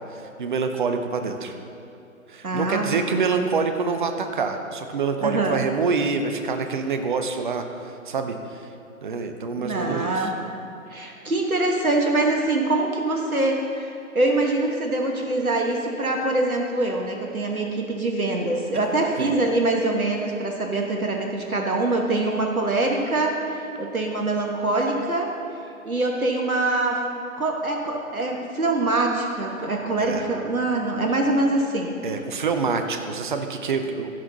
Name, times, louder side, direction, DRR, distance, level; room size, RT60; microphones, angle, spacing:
voice 1, 0.1-1.6 2.3-8.6 9.0-10.3 19.2-19.3 30.0-30.2 32.0-34.1, right 4 dB, 35° right, 7 dB, 0.6 m, -26 dB
voice 2, 2.4-3.1 5.2-5.6 9.6-10.3 10.9-25.3 25.8-27.0 27.4-32.0, right 2 dB, 80° right, 1 dB, 1.4 m, -24 dB
16.0 x 5.7 x 4.0 m, 2.8 s
figure-of-eight pair, 135°, 42 cm